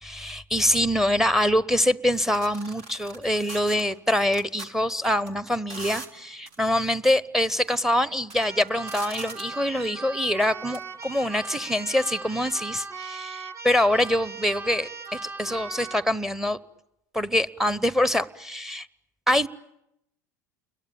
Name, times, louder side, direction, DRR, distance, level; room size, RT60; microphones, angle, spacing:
voice 1, 0.0-16.6 17.1-18.9 19.3-19.5, left 1 dB, 5° right, 1.0 m, -24 dB
sound 1, 2.1-4.7 5.1-5.3 5.7-6.1 6.5-6.6 7.5-7.8 8.2-9.6 10.7-10.8, right 3 dB, 65° right, 3.4 m, -40 dB
Keyboard (musical), 8.3-16.1, right 4 dB, 30° right, 1.3 m, -39 dB
30.0 x 22.5 x 8.9 m
hypercardioid pair, 80°, 10 cm